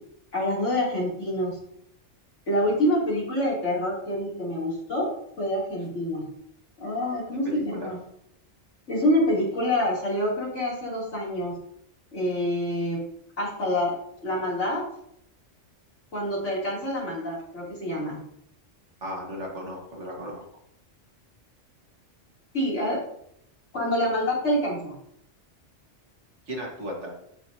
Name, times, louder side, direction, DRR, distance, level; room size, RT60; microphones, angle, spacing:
voice 1, 0.3-1.6 2.5-6.3 6.8-8.0 8.9-11.6 12.1-13.0 13.4-13.9 14.2-14.9 16.1-18.2 22.5-23.0 23.7-25.0, left 1 dB, 75° left, -6 dB, 3.5 m, -26 dB
voice 2, 7.5-7.9 19.0-20.4 26.5-27.1, equal, 75° right, -1 dB, 2.1 m, -35 dB
13.0 x 4.5 x 2.8 m, 0.71 s
omnidirectional pair, 1.2 m